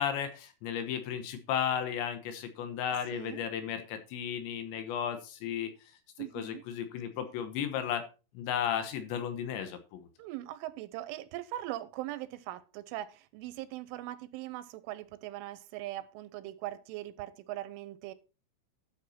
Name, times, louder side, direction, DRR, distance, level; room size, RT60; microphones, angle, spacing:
voice 1, 0.0-5.7 6.3-8.1 8.3-10.1, left 8 dB, 75° left, 3.2 m, -34 dB
voice 2, 3.1-3.5 6.2-6.6 10.2-18.1, right 15 dB, 85° right, 3.2 m, -40 dB
13.0 x 6.7 x 4.3 m
omnidirectional pair, 5.6 m